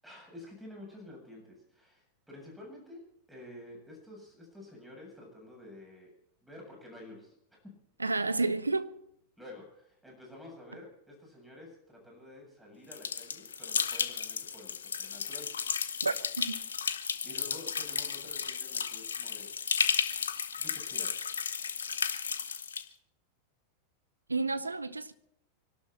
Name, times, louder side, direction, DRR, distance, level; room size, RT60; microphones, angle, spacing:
voice 1, 0.0-3.0 3.3-6.1 6.4-7.3 9.4-15.5 17.2-19.5 20.6-21.3, left 1 dB, 5° right, 7.8 m, -50 dB
voice 2, 8.0-8.9 16.0-16.6 24.3-25.1, right 3 dB, 80° right, 0.8 m, -31 dB
sound 1, 12.9-22.8, left 6 dB, 70° left, 1.0 m, -33 dB
25.0 x 12.0 x 4.5 m
figure-of-eight pair, 90°, 0 cm